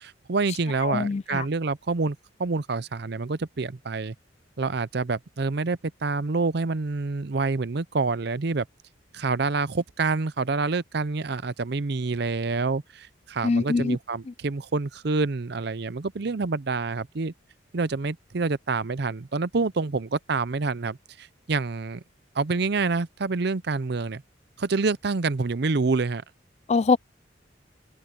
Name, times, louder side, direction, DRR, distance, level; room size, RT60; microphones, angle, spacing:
voice 1, 0.0-4.1 4.6-8.7 9.1-17.3 17.7-22.0 22.4-24.2 24.6-26.2, right 3 dB, 55° right, 0.6 m, -27 dB
voice 2, 0.8-1.5 13.4-14.0 14.3-14.4 26.7-27.0, left 4 dB, 35° left, 0.3 m, -23 dB
open air
head